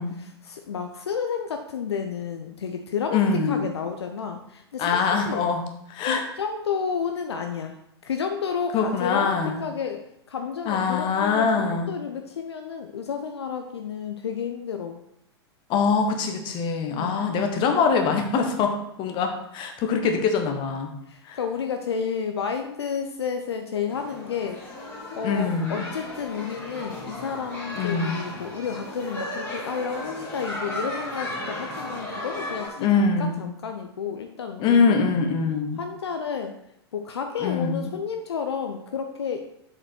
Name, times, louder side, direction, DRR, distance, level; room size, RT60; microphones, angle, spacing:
voice 1, 0.2-5.5 6.1-9.4 9.6-10.0 10.3-15.0 16.9-17.2 21.1-24.6 25.2-35.2 35.8-36.6 36.9-39.4, left 6 dB, 70° left, 5 dB, 0.6 m, -31 dB
voice 2, 3.1-3.7 4.8-6.2 8.7-9.6 10.6-12.0 15.7-18.7 19.0-20.9 21.2-21.4 25.2-25.9 27.8-28.2 32.8-33.4 34.6-35.8 37.4-37.9, left 5 dB, 35° left, 4 dB, 1.3 m, -23 dB
sound 1, 23.9-32.7, left 1 dB, 15° left, 2.8 m, -35 dB
7.3 x 5.0 x 4.4 m, 0.77 s
figure-of-eight pair, 100°, 14 cm